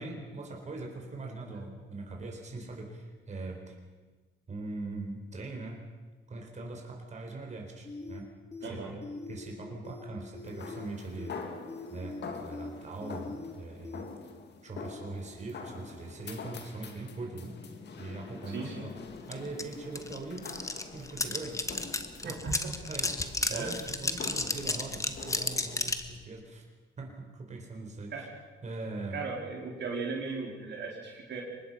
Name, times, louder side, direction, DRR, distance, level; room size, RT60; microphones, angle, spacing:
voice 1, 0.0-3.8 4.5-5.8 6.3-8.3 8.6-11.4 11.9-14.1 14.6-18.9 19.3-20.5 20.9-21.6 22.2-22.4 22.9-26.6 27.0-28.3 28.6-29.3, right 3 dB, 35° right, 1 dB, 4.5 m, -41 dB
sound 1, 7.8-8.2 8.5-8.7 9.0-9.5 9.8-10.0 10.3-10.9 11.2-11.4 11.7-12.2 12.5-12.7 13.0-13.5 13.8-14.0, left 3 dB, 35° left, 4.9 m, -42 dB
voice 2, 8.6-8.9 18.5-18.9 22.2-22.7 23.5-23.7 28.1-28.3 29.1-31.4, right 4 dB, 60° right, -1 dB, 4.5 m, -37 dB
sound 2, 10.4-25.9, left 5 dB, 60° left, 2.1 m, -45 dB
sound 3, 19.3-19.4 19.6-26.1, left 2 dB, 15° left, 1.6 m, -32 dB
24.0 x 20.0 x 5.8 m, 1.3 s
cardioid pair, 90°, 20 cm